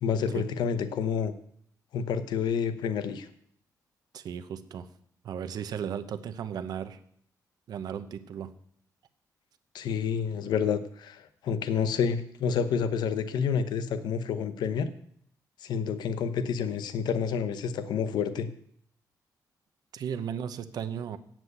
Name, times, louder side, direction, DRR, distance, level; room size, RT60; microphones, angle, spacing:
voice 1, 0.0-1.3 1.9-3.3 9.7-14.9 15.6-18.5, left 7 dB, 90° left, 12 dB, 0.9 m, -29 dB
voice 2, 4.1-4.9 5.2-7.0 7.7-8.5 19.9-21.2, right 8 dB, 65° right, 10 dB, 0.8 m, -35 dB
8.1 x 7.6 x 8.0 m, 0.66 s
cardioid pair, 140°, 7 cm